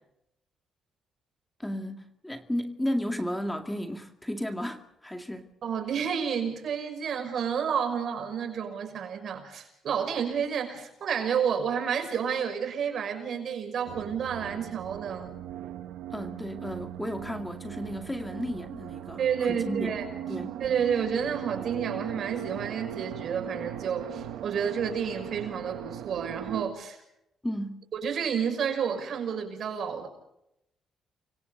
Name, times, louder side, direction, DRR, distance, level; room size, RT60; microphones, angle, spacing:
voice 1, 1.6-5.5 16.1-19.9 20.3-20.6 27.4-27.8, equal, 10° left, 2.2 m, -33 dB
voice 2, 5.6-15.4 19.2-20.1 20.6-27.0 27.9-30.1, right 7 dB, 60° right, 6.0 m, -30 dB
sound 1, 13.9-26.7, right 10 dB, 90° right, 1.2 m, -39 dB
30.0 x 24.5 x 3.9 m
cardioid pair, 90°, 0 cm